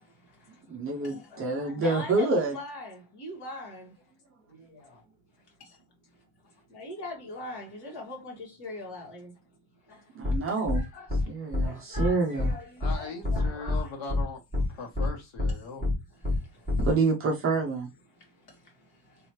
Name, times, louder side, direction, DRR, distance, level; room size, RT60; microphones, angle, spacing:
voice 1, 0.7-2.5 10.2-10.8 11.3-12.5 16.8-17.9, right 3 dB, 30° right, 0.5 m, -27 dB
voice 2, 1.3-3.9 6.7-9.3 10.7-11.1 11.6-12.6 12.9-13.9, left 2 dB, 50° left, 2.0 m, -41 dB
sound 1, 10.2-10.4 10.7-10.8 11.1-11.2 11.5-11.7 11.9-12.1 12.4-12.5 12.8-12.9 13.2-13.8 14.1-14.2 14.5-14.6 14.9-15.1 15.4-15.5 15.8-15.9 16.2-16.4 16.7-16.9, left 2 dB, 15° left, 1.6 m, -26 dB
voice 3, 12.8-15.8, left 4 dB, 70° left, 1.7 m, -40 dB
3.2 x 3.0 x 3.1 m
cardioid pair, 160°, 50 cm